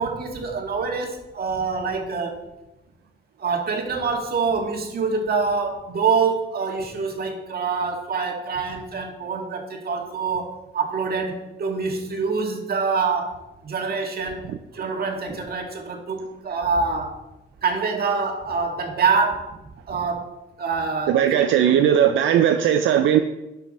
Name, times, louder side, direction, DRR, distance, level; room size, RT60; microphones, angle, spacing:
voice 1, 0.0-2.4 3.4-14.4 14.7-17.2 17.6-19.6 19.9-21.5, right 5 dB, 50° right, 2 dB, 1.9 m, -25 dB
voice 2, 21.1-23.2, right 9 dB, 75° right, 7 dB, 0.5 m, -18 dB
11.5 x 5.8 x 4.2 m, 0.97 s
cardioid pair, 90°, 20 cm